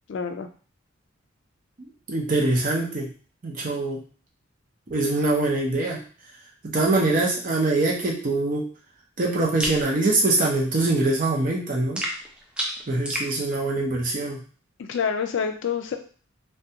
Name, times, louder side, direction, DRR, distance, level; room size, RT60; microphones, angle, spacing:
voice 1, 0.1-0.5 14.8-16.0, left 6 dB, 65° left, 6 dB, 0.3 m, -27 dB
voice 2, 2.1-3.1 3.4-4.0 4.9-6.0 6.6-8.7 9.2-12.0 12.9-14.4, right 2 dB, 45° right, -2 dB, 0.6 m, -23 dB
sound 1, 9.6-9.8 12.0-13.3, equal, 5° right, 0.4 m, -30 dB
2.3 x 2.2 x 2.7 m, 0.40 s
head